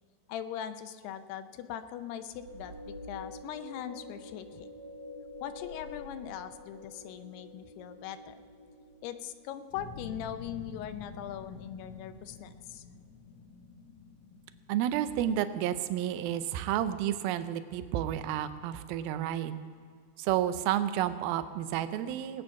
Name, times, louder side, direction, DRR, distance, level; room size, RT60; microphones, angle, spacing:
voice 1, 0.3-4.7 5.4-8.4 9.0-12.8, left 10 dB, 85° left, 10 dB, 2.7 m, -40 dB
sound 1, 2.3-9.6, left 2 dB, 50° right, 4.3 m, -47 dB
sound 2, 9.7-18.5 18.9-19.4, left 4 dB, 65° left, 1.4 m, -50 dB
voice 2, 14.7-19.6 20.2-22.4, right 11 dB, 80° right, 11 dB, 2.3 m, -31 dB
19.0 x 9.2 x 5.8 m, 2.2 s
omnidirectional pair, 4.7 m